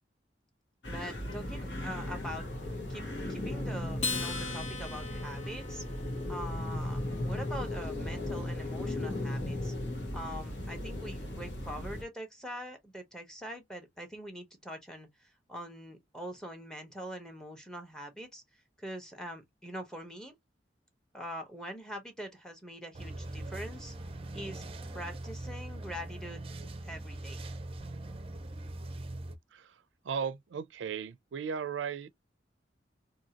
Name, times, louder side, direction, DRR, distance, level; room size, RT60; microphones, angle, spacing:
sound 1, 0.8-12.0, left 1 dB, 80° left, 1.3 m, -36 dB
voice 1, 0.8-2.5 2.9-5.8 6.3-9.7 10.1-18.4 18.8-20.4 21.1-23.9 24.3-24.6 24.9-26.4 26.8-27.4, equal, 5° left, 0.9 m, -43 dB
Acoustic guitar, 4.0-6.7, left 4 dB, 35° left, 0.9 m, -38 dB
sound 2, 22.9-29.4, right 2 dB, 30° right, 0.5 m, -41 dB
voice 2, 29.5-32.1, right 6 dB, 90° right, 0.4 m, -36 dB
2.8 x 2.7 x 2.8 m
head